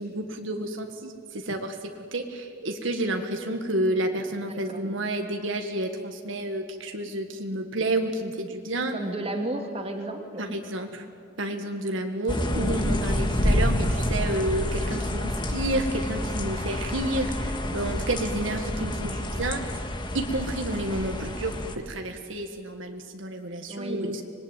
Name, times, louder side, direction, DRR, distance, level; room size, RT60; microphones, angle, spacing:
voice 1, 0.0-9.0 10.4-11.1 11.4-19.8 20.1-24.2, right 1 dB, 70° right, 4 dB, 1.7 m, -30 dB
voice 2, 8.9-10.4 23.7-24.1, right 1 dB, 30° right, 3 dB, 2.5 m, -32 dB
sound 1, 12.3-21.7, left 1 dB, 25° left, 1.7 m, -28 dB
25.5 x 21.0 x 9.3 m, 2.4 s
head